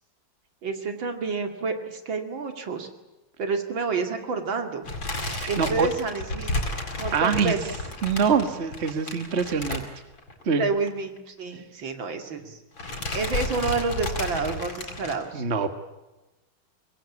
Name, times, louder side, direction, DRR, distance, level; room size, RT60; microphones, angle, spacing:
voice 1, 0.6-2.9 3.4-4.9 5.5-6.5 7.0-7.7 10.6-12.6 13.1-15.4, right 4 dB, 65° right, 6 dB, 3.1 m, -29 dB
sound 1, 4.8-10.4 10.7-10.9 11.2-11.3 12.2-12.5 12.8-15.1, left 2 dB, 65° left, 5.5 m, -32 dB
voice 2, 5.3-5.9 7.1-7.5 8.0-9.9 10.4-10.6 15.3-15.7, right 6 dB, 35° right, 8 dB, 1.8 m, -24 dB
25.0 x 21.0 x 8.5 m, 1.0 s
omnidirectional pair, 2.3 m